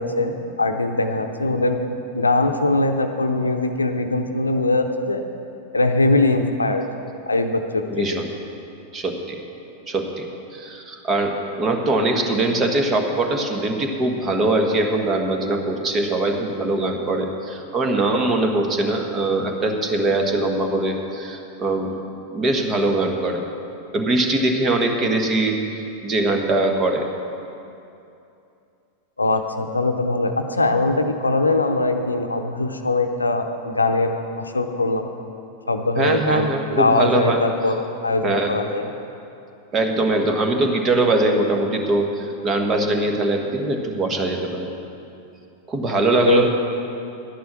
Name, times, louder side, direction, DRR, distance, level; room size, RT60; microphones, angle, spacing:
voice 1, 0.0-1.8 2.1-5.2 5.7-6.8 7.3-8.0 29.2-35.1 35.7-38.9 46.3-46.4, left 2 dB, 80° left, 6 dB, 0.7 m, -21 dB
voice 2, 7.9-8.3 8.9-9.4 9.9-10.3 10.5-21.9 22.3-23.4 23.9-27.1 36.0-37.4 38.2-38.5 39.7-44.7 45.7-46.5, right 2 dB, 25° right, 3 dB, 1.5 m, -22 dB
11.5 x 10.0 x 6.1 m, 2.7 s
figure-of-eight pair, 90°, 0 cm